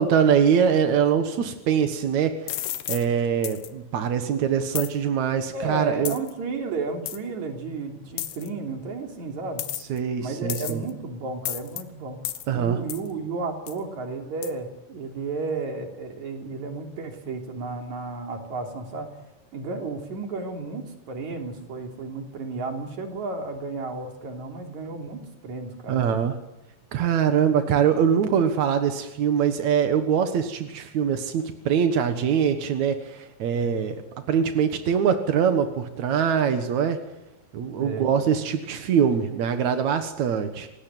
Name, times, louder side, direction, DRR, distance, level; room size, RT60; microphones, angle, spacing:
voice 1, 0.0-6.1 9.8-10.8 12.5-12.8 25.9-26.4 26.9-34.0 34.3-37.0 37.5-40.7, right 7 dB, 65° right, 7 dB, 1.9 m, -23 dB
sound 1, 2.5-3.1 3.4-3.7 4.8-4.9 6.1-6.3 7.1-7.2 8.2-8.5 9.6-10.0 10.5-10.9 11.5-11.8 12.3-12.5 12.9-13.1 13.7-13.8 14.4-14.5, left 13 dB, 70° left, 3.3 m, -32 dB
voice 2, 5.5-9.7 10.2-12.2 12.5-19.1 19.5-26.0 28.1-28.3 33.5-33.8 37.8-38.1, right 3 dB, 45° right, 3 dB, 4.2 m, -33 dB
28.0 x 19.5 x 9.3 m, 0.94 s
omnidirectional pair, 5.3 m